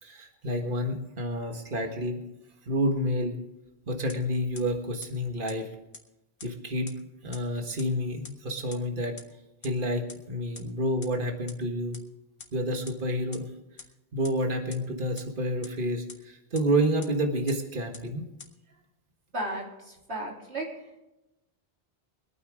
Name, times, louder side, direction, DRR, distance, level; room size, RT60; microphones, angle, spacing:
voice 1, 0.0-2.2 2.7-3.4 3.9-5.7 6.4-6.9 7.2-9.2 9.6-12.0 12.5-13.4 14.1-18.3, equal, 50° right, 4 dB, 1.8 m, -29 dB
sound 1, 4.1-4.2 4.6-4.7 5.0-5.1 5.5-5.6 5.9-6.0 6.4-6.5 6.9-7.0 7.3-7.4 7.8-7.9 8.2-8.3 8.7-8.8 9.2-9.3 9.6-9.7 10.1-10.2 10.6-10.7 11.0-11.1 11.5-11.6 11.9-12.0 12.4-12.5 12.9-13.0 13.3-13.4 13.8-13.9 14.2-14.3 14.7-14.8 15.2-15.3 15.6-15.7 16.1-16.2 16.5-16.6 17.0-17.1 17.5-17.6 17.9-18.0 18.4-18.5, left 4 dB, 55° left, 1.7 m, -43 dB
voice 2, 19.3-20.7, right 1 dB, 90° right, -2 dB, 3.6 m, -34 dB
24.0 x 9.3 x 3.7 m, 0.94 s
omnidirectional pair, 1.1 m